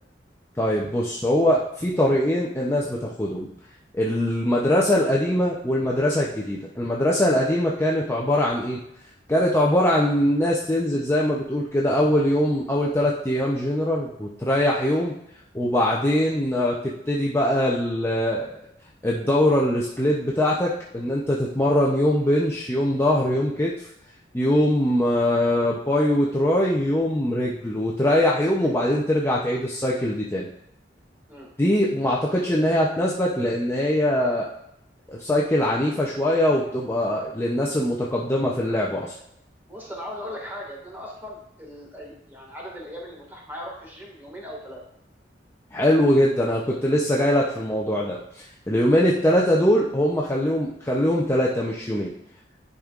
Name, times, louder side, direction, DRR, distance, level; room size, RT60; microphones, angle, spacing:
voice 1, 0.6-3.5 3.9-8.8 9.3-15.1 15.5-18.6 19.0-23.9 24.3-30.5 31.6-34.5 35.1-39.1 45.7-52.1, left 1 dB, 15° left, -4 dB, 0.6 m, -22 dB
voice 2, 39.7-44.8, equal, 10° right, -3 dB, 1.9 m, -38 dB
11.0 x 5.2 x 2.5 m, 0.75 s
head